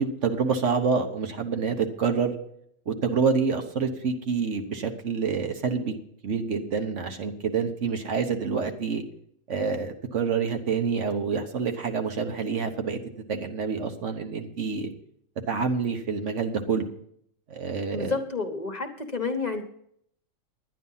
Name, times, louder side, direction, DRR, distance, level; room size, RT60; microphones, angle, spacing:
voice 1, 0.0-2.3 2.9-5.9 6.2-9.0 9.5-13.0 13.3-14.9 15.5-16.8 17.5-18.1, right 5 dB, 65° right, 5 dB, 1.4 m, -27 dB
voice 2, 17.9-19.6, left 4 dB, 35° left, 5 dB, 1.2 m, -30 dB
11.0 x 10.0 x 5.6 m, 0.69 s
omnidirectional pair, 1.4 m